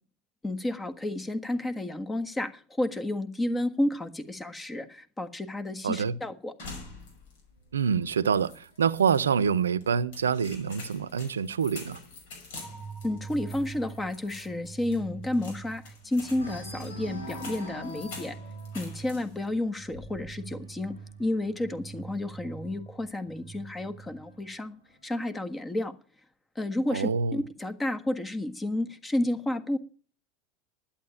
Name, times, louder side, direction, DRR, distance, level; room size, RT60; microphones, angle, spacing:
voice 1, 0.4-6.5 13.0-18.4 18.7-24.8 25.0-25.9 26.5-29.8, left 1 dB, 15° left, 1.5 m, -31 dB
voice 2, 5.8-6.1 7.7-12.0 26.9-27.4, right 6 dB, 80° right, 0.7 m, -26 dB
sound 1, 6.6-7.5 7.8-7.9 8.3-9.2 9.8-19.5 19.8-20.4, left 3 dB, 65° left, 5.6 m, -47 dB
sound 2, 7.6-11.2 11.6-11.9 12.2-12.3 12.7-15.9 16.3-22.8 23.7-24.7, left 2 dB, 85° left, 5.4 m, -47 dB
sound 3, 12.6-24.5, right 6 dB, ahead, 4.1 m, -45 dB
11.5 x 8.7 x 9.0 m
hypercardioid pair, 80°, 0 cm